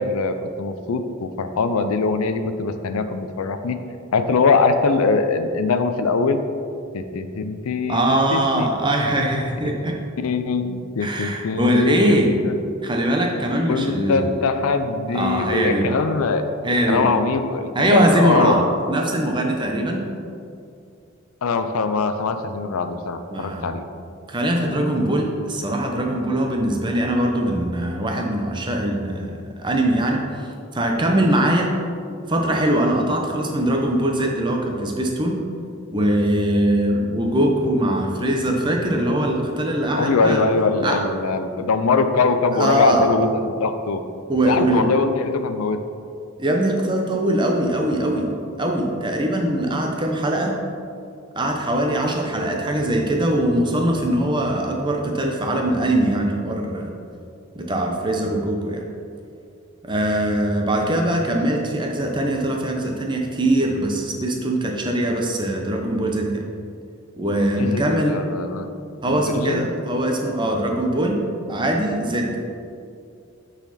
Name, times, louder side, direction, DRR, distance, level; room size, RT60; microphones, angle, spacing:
voice 1, 0.0-3.8 4.1-6.4 6.9-8.7 10.2-12.6 13.7-16.5 16.9-18.7 21.4-23.9 39.9-44.0 44.4-45.8 67.6-68.7 69.0-69.7, left 4 dB, 75° left, 8 dB, 0.5 m, -22 dB
voice 2, 7.9-10.0 11.0-12.4 12.8-14.4 15.1-16.0 16.6-17.1 17.7-18.6 18.9-20.0 23.3-23.7 24.3-31.7 32.3-35.3 35.9-40.4 40.8-41.0 42.5-43.1 44.3-44.9 46.4-48.3 48.6-50.6 51.4-56.9 57.5-58.9 59.8-66.4 67.2-68.2 69.0-71.2 71.5-72.4, right 1 dB, 20° right, 1 dB, 0.7 m, -21 dB
8.8 x 4.1 x 4.1 m, 2.4 s
head